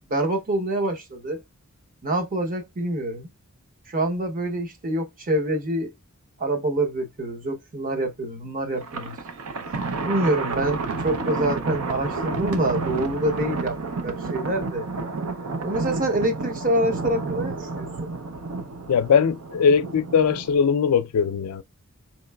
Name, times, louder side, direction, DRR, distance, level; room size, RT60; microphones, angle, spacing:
voice 1, 0.1-1.4 2.0-3.3 3.9-5.9 6.4-9.2 10.0-13.8 14.0-14.9 15.6-18.1, right 1 dB, 40° right, 0.8 m, -26 dB
Thunder, 8.8-20.6, right 3 dB, 75° right, 0.5 m, -30 dB
voice 2, 18.9-21.6, left 6 dB, 85° left, 0.4 m, -20 dB
3.9 x 3.0 x 2.2 m
head